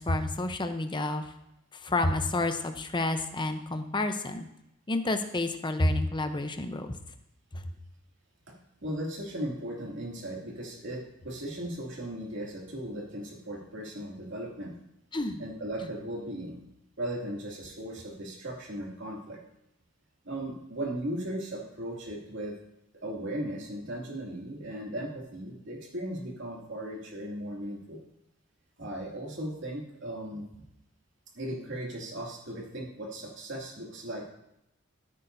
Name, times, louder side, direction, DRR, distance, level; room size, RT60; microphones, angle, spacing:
voice 1, 0.0-1.3 1.7-4.5 4.9-7.0 7.5-7.6 15.1-15.4, left 2 dB, 25° left, 7 dB, 0.7 m, -29 dB
voice 2, 8.8-14.7 15.4-16.6 17.0-19.4 20.2-22.5 23.0-28.0 28.8-30.7 31.3-34.3, right 1 dB, 65° right, -2 dB, 2.5 m, -37 dB
14.0 x 8.6 x 2.7 m, 0.82 s
head